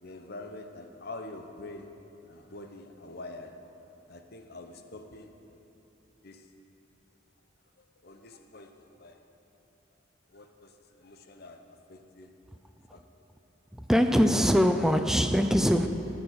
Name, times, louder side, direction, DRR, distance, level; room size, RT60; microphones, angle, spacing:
voice 1, 0.0-1.9 2.3-3.6 4.1-5.6 6.2-6.5 7.8-9.2 10.3-12.3 12.9-13.2, left 2 dB, 50° left, 0.9 m, -46 dB
voice 2, 13.7-15.9, equal, ahead, 0.4 m, -23 dB
18.5 x 7.1 x 6.5 m
head